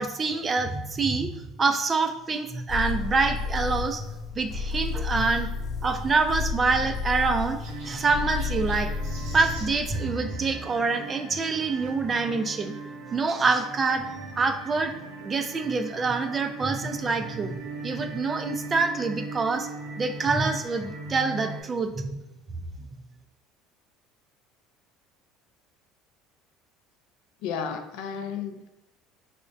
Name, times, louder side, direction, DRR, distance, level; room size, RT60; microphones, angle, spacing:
voice 1, 0.0-4.1 4.4-5.5 5.8-8.9 9.3-12.7 13.1-14.1 14.3-14.9 15.2-17.5 17.8-19.7 20.0-22.2 22.8-22.9, right 4 dB, 25° right, 7 dB, 0.3 m, -26 dB
sound 1, 2.7-9.9, left 4 dB, 30° left, 0.8 m, -32 dB
Chirp tweet, 6.4-10.5 11.7-11.9 12.6-12.7 12.9-13.0 14.3-14.4, right 2 dB, 85° right, 1.2 m, -49 dB
sound 2, 7.7-21.6, right 3 dB, 70° right, 0.7 m, -40 dB
voice 2, 27.4-28.7, left 6 dB, 75° left, 6 dB, 0.4 m, -33 dB
5.0 x 2.0 x 2.5 m, 0.91 s
supercardioid pair, 115°, 0 cm